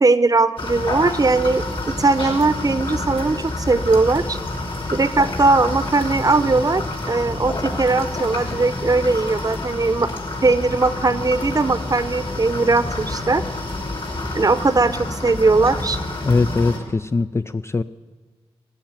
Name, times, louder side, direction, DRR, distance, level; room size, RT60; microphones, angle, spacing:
voice 1, 0.0-4.4 4.9-10.1 10.4-13.4 14.3-16.0, right 3 dB, 35° right, 13 dB, 0.8 m, -19 dB
sound 1, 0.6-16.8, left 2 dB, 55° left, 3.0 m, -28 dB
voice 2, 16.2-17.8, left 3 dB, 25° left, 11 dB, 0.4 m, -21 dB
15.5 x 7.6 x 8.9 m, 1.4 s
cardioid pair, 55°, 11 cm